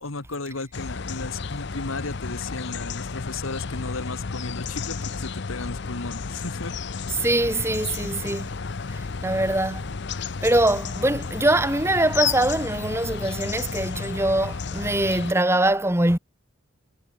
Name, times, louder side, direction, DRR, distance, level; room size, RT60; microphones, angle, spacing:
voice 1, 0.0-6.7, left 3 dB, 75° left, 1.9 m, -34 dB
sound 1, 0.7-15.3, left 5 dB, 55° left, 0.7 m, -32 dB
voice 2, 7.2-8.5 8.9-9.9 10.4-16.2, right 1 dB, 10° right, 1.4 m, -23 dB
head